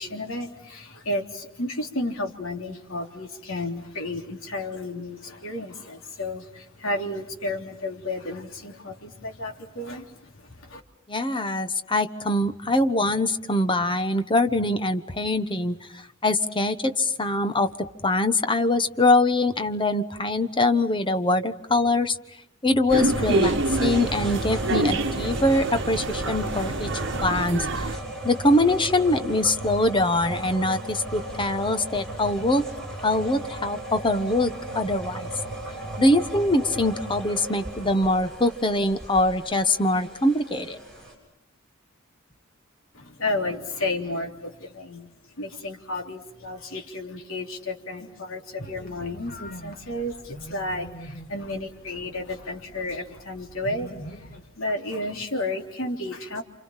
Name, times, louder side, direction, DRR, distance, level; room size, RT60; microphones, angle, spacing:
voice 1, 0.0-10.8 42.9-54.3 54.6-56.4, left 2 dB, 80° left, 3 dB, 3.4 m, -32 dB
voice 2, 11.1-17.7 18.0-22.2 22.6-26.9 27.2-27.9 28.2-32.6 33.0-35.3 36.0-40.8, left 2 dB, 25° left, 9 dB, 1.2 m, -23 dB
sound 1, 22.9-41.1, right 1 dB, 5° left, 7.0 m, -35 dB
sound 2, 22.9-28.0, right 2 dB, 60° right, 1.3 m, -27 dB
sound 3, 48.6-54.4, equal, 45° left, 3.2 m, -43 dB
29.5 x 27.5 x 5.8 m, 0.76 s
head